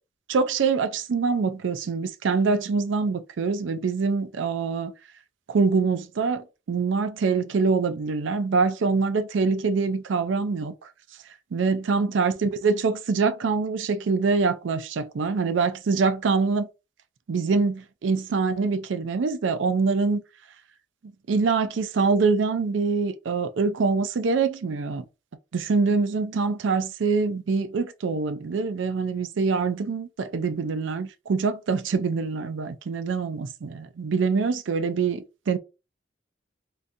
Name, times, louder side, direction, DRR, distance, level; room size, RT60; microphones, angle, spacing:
voice 1, 0.3-4.9 5.5-10.9 11.5-16.7 17.3-20.2 21.3-25.0 25.5-35.6, right 4 dB, 80° right, 0.4 m, -24 dB
3.7 x 2.6 x 2.5 m
head